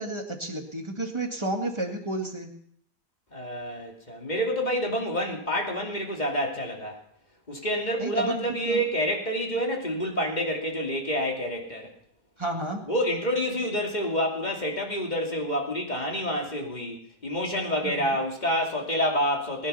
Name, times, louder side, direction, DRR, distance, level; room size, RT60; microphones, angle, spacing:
voice 1, 0.0-2.5 8.0-8.8 12.4-12.8 17.8-18.2, right 2 dB, 15° right, 2 dB, 1.9 m, -31 dB
voice 2, 3.3-7.0 7.5-11.9 12.9-19.7, equal, 25° left, 1 dB, 2.6 m, -28 dB
20.5 x 10.0 x 5.6 m, 0.65 s
omnidirectional pair, 1.8 m